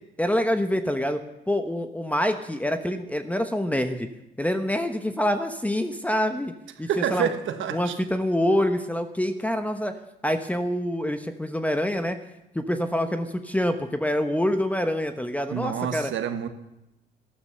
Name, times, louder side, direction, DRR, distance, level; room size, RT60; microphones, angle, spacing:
voice 1, 0.2-1.2 1.5-4.1 4.4-6.5 6.8-7.3 7.7-9.9 10.2-12.2 12.5-16.1, equal, 5° left, 1.0 m, -26 dB
voice 2, 6.9-8.0 15.5-16.5, right 8 dB, 75° right, 1.4 m, -28 dB
13.5 x 12.0 x 6.9 m
cardioid pair, 90°, 20 cm